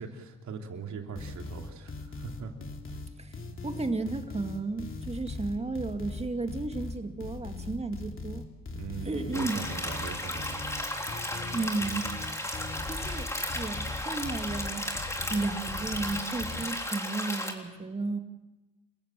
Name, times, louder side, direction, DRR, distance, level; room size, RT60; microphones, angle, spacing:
voice 1, 0.0-2.5 8.7-10.6, right 5 dB, 70° right, 3 dB, 3.0 m, -40 dB
sound 1, 1.2-16.6, left 3 dB, 40° left, 3.0 m, -40 dB
voice 2, 3.6-8.5 9.0-9.6 11.5-12.1 12.9-13.3 13.5-14.8 15.3-18.2, right 3 dB, 20° right, 6 dB, 2.2 m, -33 dB
sound 2, 9.3-17.5, left 1 dB, 10° left, 3.4 m, -35 dB
29.0 x 15.5 x 7.4 m, 1.1 s
cardioid pair, 90°, 30 cm